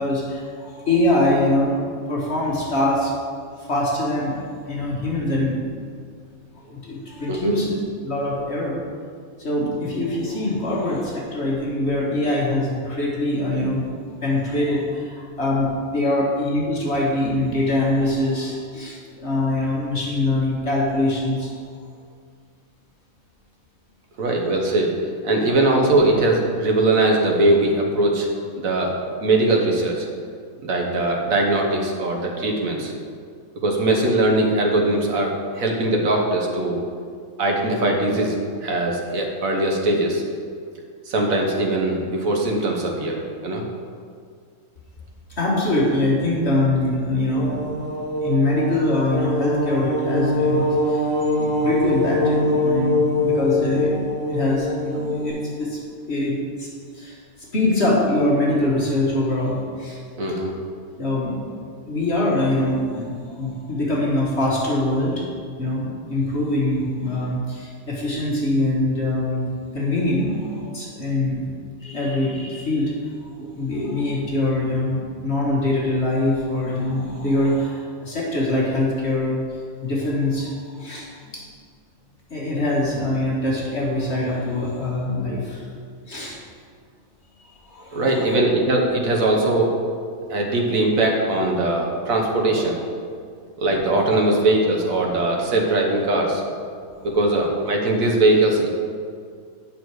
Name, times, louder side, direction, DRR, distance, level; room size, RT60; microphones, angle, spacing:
voice 1, 0.0-1.8 2.1-3.1 3.7-5.6 6.5-7.7 8.0-8.7 9.4-13.9 14.2-21.5 45.3-47.6 48.2-55.8 56.1-60.0 61.0-61.6 61.9-65.3 65.6-71.4 71.8-73.0 73.4-79.4 79.8-81.4 82.3-85.6 86.1-86.4 87.4-88.4 92.6-92.7 96.1-96.2, left 1 dB, 50° left, -5 dB, 1.6 m, -23 dB
voice 2, 24.2-24.9 25.2-28.3 28.5-28.9 29.2-30.1 30.6-32.9 33.5-36.8 37.4-40.2 41.1-43.6 60.2-60.5 87.9-89.7 90.3-92.8 93.6-96.4 97.0-98.7, right 2 dB, 70° right, 1 dB, 1.5 m, -20 dB
sound 1, 47.3-55.3, left 1 dB, 40° right, 2.5 m, -23 dB
8.7 x 5.9 x 4.7 m, 2.1 s
omnidirectional pair, 1.5 m